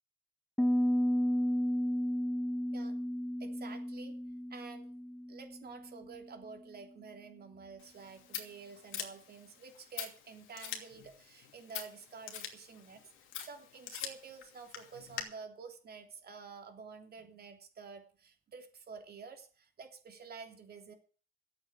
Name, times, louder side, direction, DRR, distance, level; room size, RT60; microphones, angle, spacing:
Piano, 0.6-6.2, equal, 5° left, 1.0 m, -33 dB
voice 1, 3.4-4.2 4.5-4.9 5.3-13.1 13.4-20.9, right 5 dB, 55° right, 4 dB, 3.3 m, -50 dB
Scissors, 7.8-15.2, left 9 dB, 85° left, 2.7 m, -45 dB
12.5 x 8.7 x 8.2 m, 0.41 s
cardioid pair, 90°, 20 cm